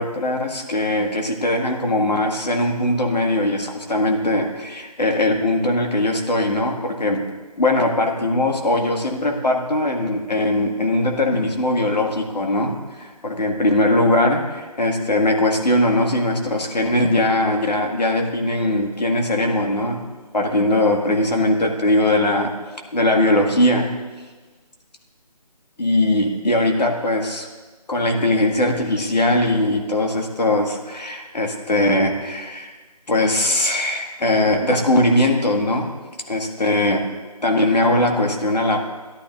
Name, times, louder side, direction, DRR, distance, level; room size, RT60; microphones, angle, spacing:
voice 1, 0.0-7.2 7.6-20.0 20.3-22.5 22.9-23.9 25.8-27.5 27.9-32.7 33.1-35.9 36.3-37.0 37.4-38.8, left 1 dB, 85° left, 2 dB, 1.9 m, -20 dB
15.0 x 11.5 x 2.5 m, 1.3 s
figure-of-eight pair, 160°, 21 cm